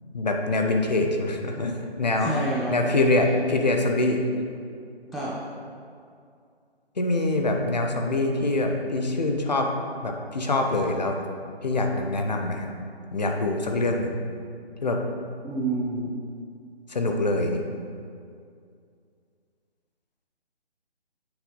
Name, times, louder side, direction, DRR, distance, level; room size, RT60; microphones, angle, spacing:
voice 1, 0.1-2.4 2.7-4.3 7.0-9.7 10.0-11.2 11.6-12.7 13.1-14.2 14.8-15.0 16.9-17.6, left 2 dB, 40° left, 3 dB, 0.7 m, -24 dB
voice 2, 2.2-2.7 5.1-5.4 15.4-16.2, right 2 dB, ahead, -7 dB, 0.3 m, -28 dB
8.1 x 3.4 x 5.4 m, 2.3 s
figure-of-eight pair, 170°, 32 cm